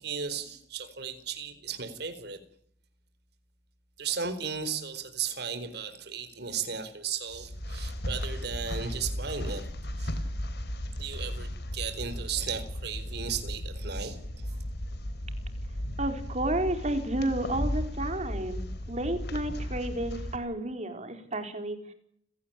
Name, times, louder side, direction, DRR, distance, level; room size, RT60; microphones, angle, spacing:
voice 1, 0.0-2.4 4.0-9.7 10.0-10.1 11.0-14.2 14.4-14.5, right 6 dB, 65° right, 4.4 m, -35 dB
sound 1, 7.3-20.4, equal, 65° left, 3.4 m, -35 dB
voice 2, 16.0-18.6 18.9-21.9, right 1 dB, 40° right, 4.4 m, -31 dB
30.0 x 17.5 x 9.0 m
head